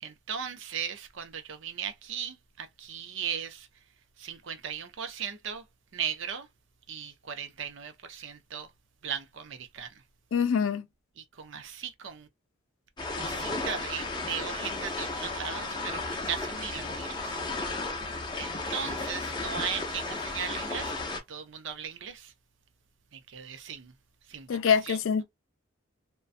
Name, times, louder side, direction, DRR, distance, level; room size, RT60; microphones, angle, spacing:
voice 1, 0.0-3.7 4.2-5.6 5.9-6.5 6.9-8.7 9.0-9.9 11.2-12.3 13.2-17.4 18.4-22.3 23.1-23.9 24.3-24.6 24.8-25.0, right 8 dB, 60° right, 0.5 m, -37 dB
voice 2, 10.3-10.8 24.5-25.2, left 7 dB, 75° left, 0.4 m, -25 dB
sound 1, 13.0-21.2, left 3 dB, 20° left, 0.6 m, -34 dB
2.5 x 2.2 x 2.4 m
head